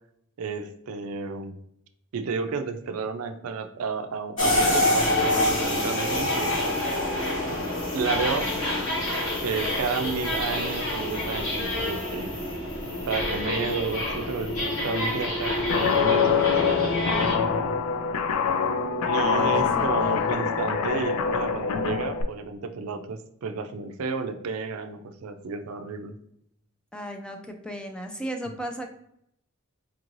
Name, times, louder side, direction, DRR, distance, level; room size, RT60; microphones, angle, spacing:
voice 1, 0.4-1.5 2.1-6.6 7.9-8.5 9.4-12.3 13.1-17.3 19.0-26.2, right 4 dB, 75° right, 8 dB, 0.4 m, -31 dB
sound 1, 4.4-17.4, left 1 dB, 60° left, 1.3 m, -27 dB
Guitar, 15.7-22.2, left 6 dB, 85° left, 0.4 m, -24 dB
voice 2, 19.3-20.2 26.9-28.9, equal, 5° left, 4 dB, 0.3 m, -35 dB
4.5 x 2.5 x 3.0 m, 0.74 s
head